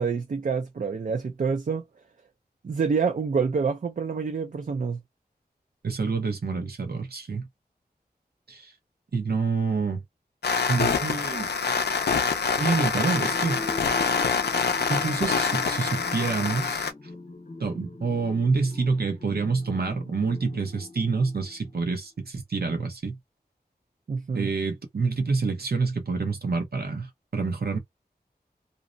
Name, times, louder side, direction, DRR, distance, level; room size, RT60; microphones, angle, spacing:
voice 1, 0.0-1.8 2.6-5.0 24.1-24.5, right 5 dB, 50° right, 0.4 m, -27 dB
voice 2, 5.8-7.5 8.5-8.7 9.1-10.0 10.7-11.5 12.6-13.6 14.9-16.8 17.6-23.2 24.3-27.8, right 4 dB, 70° right, 0.8 m, -27 dB
sound 1, 10.4-16.9, left 5 dB, 80° left, 0.4 m, -26 dB
sound 2, 13.1-21.8, left 2 dB, 50° left, 0.8 m, -41 dB
2.6 x 2.1 x 2.6 m
wide cardioid pair, 70°, 17 cm